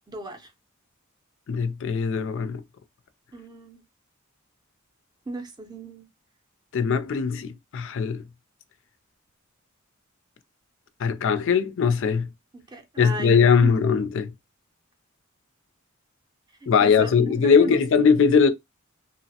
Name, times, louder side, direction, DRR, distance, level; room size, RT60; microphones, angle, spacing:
voice 1, 0.1-0.5 3.3-3.8 5.3-6.1 12.5-13.7 16.6-17.8, right 2 dB, 20° right, 0.5 m, -36 dB
voice 2, 1.5-2.6 6.7-8.2 11.0-12.3 13.0-14.3 16.7-18.5, left 6 dB, 65° left, 0.4 m, -20 dB
2.8 x 2.0 x 2.7 m
head